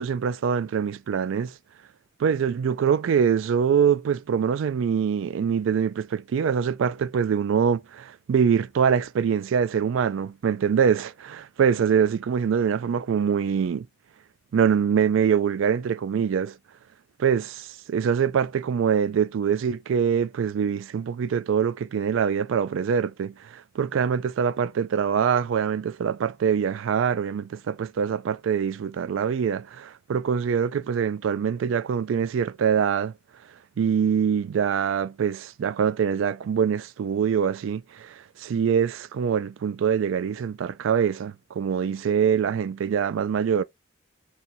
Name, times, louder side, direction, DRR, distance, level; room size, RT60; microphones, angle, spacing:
voice 1, 0.0-1.5 2.2-13.9 14.5-16.5 17.2-33.1 33.8-43.6, right 7 dB, 65° right, 0.3 m, -24 dB
3.6 x 2.7 x 4.2 m
head